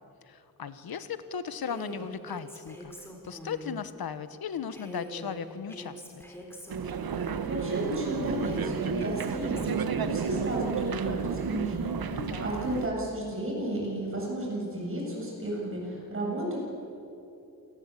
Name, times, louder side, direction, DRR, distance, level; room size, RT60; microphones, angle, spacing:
voice 1, 0.3-2.9 3.2-6.2 12.1-12.6, left 7 dB, 80° left, 12 dB, 1.2 m, -37 dB
Female speech woman speaking, 1.6-3.8 4.7-7.6 8.4-10.3, right 1 dB, 5° left, 3.7 m, -44 dB
sound 1, 6.7-12.9, right 6 dB, 75° right, 1.2 m, -32 dB
voice 2, 7.4-9.7 10.0-12.0 12.4-16.6, right 1 dB, 35° right, -2 dB, 7.7 m, -33 dB
28.0 x 19.0 x 8.4 m, 2.8 s
wide cardioid pair, 165°, 36 cm